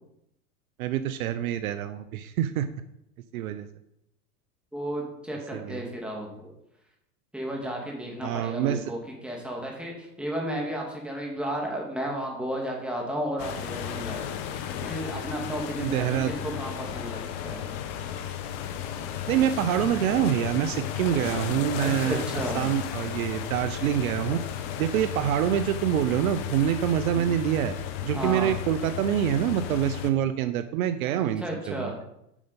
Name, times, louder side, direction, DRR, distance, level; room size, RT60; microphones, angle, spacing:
voice 1, 0.8-2.7 3.3-3.7 5.5-5.8 8.2-8.8 15.8-16.3 19.3-22.2 22.6-24.4 24.8-27.8 28.0-31.9, right 10 dB, 65° right, 11 dB, 0.7 m, -26 dB
voice 2, 4.7-6.5 7.3-14.3 14.8-17.2 17.4-17.8 21.8-22.7 28.1-28.5 31.1-32.0, right 1 dB, ahead, -1 dB, 2.3 m, -33 dB
sound 1, 13.4-30.1, left 9 dB, 50° left, 1.1 m, -34 dB
8.5 x 5.3 x 5.3 m, 0.80 s
hypercardioid pair, 110°, 45 cm